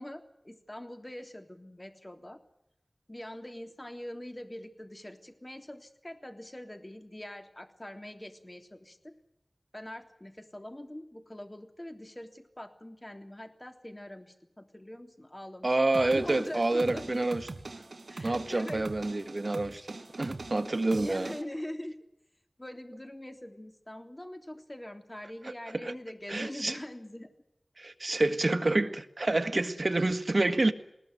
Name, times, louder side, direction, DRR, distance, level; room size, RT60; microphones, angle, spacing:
voice 1, 0.0-2.4 3.1-9.2 9.7-17.3 18.1-18.9 21.0-22.0 22.6-27.3 28.1-28.2 29.5-29.7, left 1 dB, 25° left, 3.3 m, -43 dB
voice 2, 15.6-17.4 18.2-21.3 25.8-25.9 26.3-26.8 27.8-30.7, right 2 dB, 55° right, 1.7 m, -28 dB
sound 1, 15.9-21.4, right 3 dB, 90° right, 2.5 m, -43 dB
20.5 x 19.5 x 9.4 m
wide cardioid pair, 55°, 0 cm